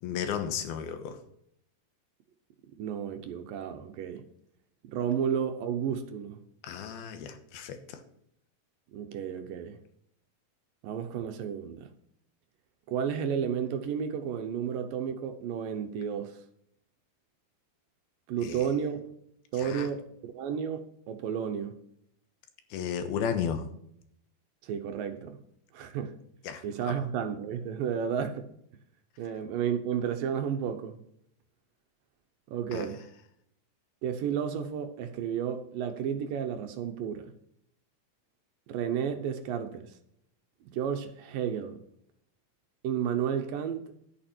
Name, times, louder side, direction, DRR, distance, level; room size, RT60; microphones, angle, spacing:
voice 1, 0.0-1.2 6.6-8.0 18.4-18.7 19.6-19.9 22.7-23.7 26.4-27.0 32.7-32.9, left 8 dB, 85° left, 3.1 m, -34 dB
voice 2, 2.8-4.3 4.8-6.4 8.9-9.8 10.8-11.9 12.9-16.4 18.3-19.1 19.5-21.8 24.6-25.4 25.7-26.1 26.6-28.5 29.2-31.0 32.5-33.0 34.0-37.3 38.7-39.9 40.7-41.8 42.8-43.9, right 8 dB, 75° right, 2.5 m, -32 dB
11.0 x 9.6 x 4.5 m
omnidirectional pair, 4.3 m